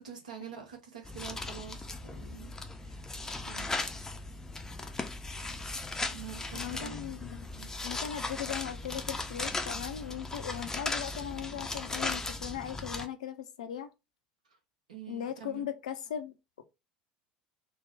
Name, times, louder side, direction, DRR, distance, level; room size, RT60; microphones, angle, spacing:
voice 1, 0.0-3.1 3.3-4.0 6.1-7.0 7.5-7.7 14.5-14.6 14.9-15.7, right 8 dB, 75° right, 1.0 m, -47 dB
sound 1, 1.0-13.1, left 3 dB, 15° left, 0.5 m, -37 dB
voice 2, 6.5-7.5 7.8-13.9 15.1-16.6, left 10 dB, 70° left, 0.5 m, -38 dB
3.4 x 2.1 x 3.2 m
figure-of-eight pair, 70°, 4 cm